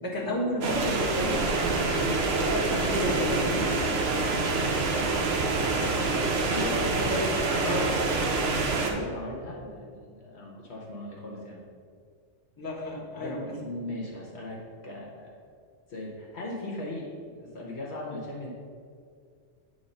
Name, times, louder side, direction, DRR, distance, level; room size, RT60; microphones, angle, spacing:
voice 1, 0.0-2.2 2.5-3.8 7.1-7.2 7.6-8.0 12.6-13.5, equal, 15° left, -5 dB, 1.3 m, -31 dB
sound 1, 0.6-8.9, right 3 dB, 60° right, 1.0 m, -26 dB
voice 2, 6.5-7.1 8.8-11.6 13.2-15.3 15.9-18.5, left 1 dB, 60° left, -3 dB, 1.3 m, -38 dB
8.6 x 3.3 x 5.4 m, 2.2 s
omnidirectional pair, 1.3 m